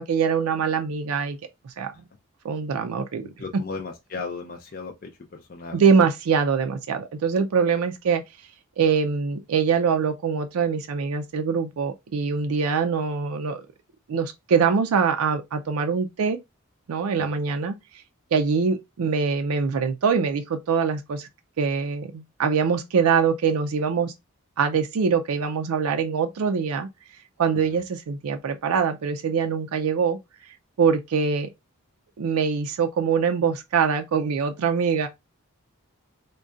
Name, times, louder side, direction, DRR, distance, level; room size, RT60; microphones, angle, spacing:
voice 1, 0.0-1.4 1.6-1.9 2.4-3.3 5.7-8.2 8.8-13.7 14.1-16.4 16.9-17.8 18.3-21.3 21.6-24.1 24.6-26.9 27.4-30.2 30.4-31.5 32.2-35.1, right 6 dB, 85° right, 0.4 m, -23 dB
voice 2, 3.2-6.0 17.2-17.3, left 4 dB, 40° left, 0.4 m, -36 dB
3.7 x 2.2 x 2.4 m
head